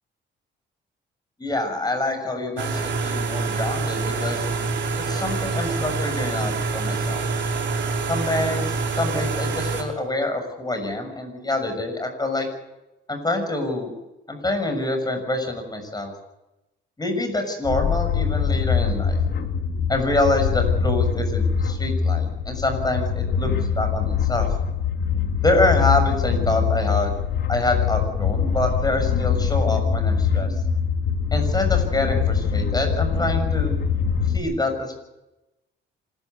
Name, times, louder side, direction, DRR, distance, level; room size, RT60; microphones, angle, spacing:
voice 1, 1.4-4.5 5.0-7.3 8.1-12.5 13.1-13.9 14.3-16.1 17.0-19.2 19.9-24.5 25.4-27.1 27.5-30.5 31.3-33.8 34.3-34.9, left 2 dB, 20° left, 5 dB, 6.8 m, -26 dB
sound 1, 2.6-9.8, right 4 dB, 65° right, 5.3 m, -26 dB
sound 2, 17.6-34.4, left 6 dB, 65° left, 2.8 m, -23 dB
26.5 x 14.0 x 8.3 m, 0.96 s
cardioid pair, 90°, 20 cm